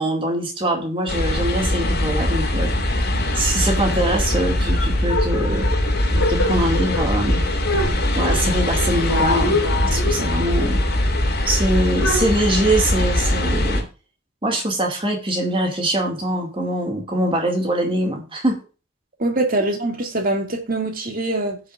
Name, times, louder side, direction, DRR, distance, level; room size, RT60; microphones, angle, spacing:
voice 1, 0.0-2.7 3.3-5.7 6.3-7.4 8.1-9.6 9.9-10.8 11.5-13.8 14.4-18.6, right 1 dB, 25° right, 2.4 m, -23 dB
sound 1, 1.1-13.8, left 1 dB, 50° left, 2.8 m, -21 dB
sound 2, 5.1-12.3, left 2 dB, 90° left, 3.3 m, -26 dB
voice 2, 19.2-21.6, right 2 dB, 40° right, 2.4 m, -23 dB
16.5 x 6.4 x 2.6 m
head